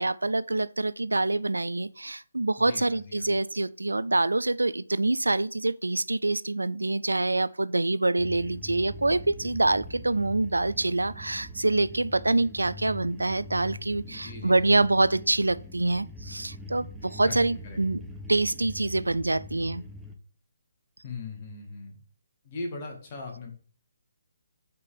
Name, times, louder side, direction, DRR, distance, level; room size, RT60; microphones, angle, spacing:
voice 1, 0.0-18.0 18.3-19.8, right 2 dB, 80° right, 0.3 m, -26 dB
voice 2, 2.6-3.3 14.0-14.8 17.2-17.8 21.0-21.9 22.4-23.5, left 3 dB, 30° left, 2.0 m, -39 dB
sound 1, 8.2-20.1, equal, 5° right, 0.8 m, -43 dB
5.2 x 4.1 x 5.0 m
figure-of-eight pair, 140°, 0 cm